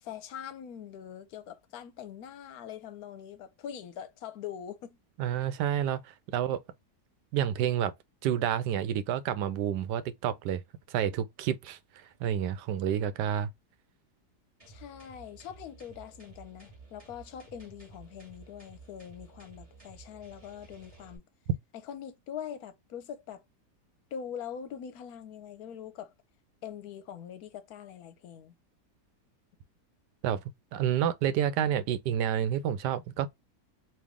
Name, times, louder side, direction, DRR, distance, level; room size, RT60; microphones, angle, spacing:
voice 1, 0.0-5.0 14.7-21.2 21.8-23.4 24.1-26.1 26.6-28.5, left 9 dB, 70° left, 1.0 m, -43 dB
voice 2, 5.2-6.6 7.3-7.9 8.2-10.6 10.9-13.5 30.2-30.4 30.7-33.3, right 9 dB, 90° right, 1.2 m, -29 dB
sound 1, 14.6-21.2, right 3 dB, 20° right, 1.3 m, -53 dB
3.2 x 2.7 x 3.5 m
omnidirectional pair, 1.8 m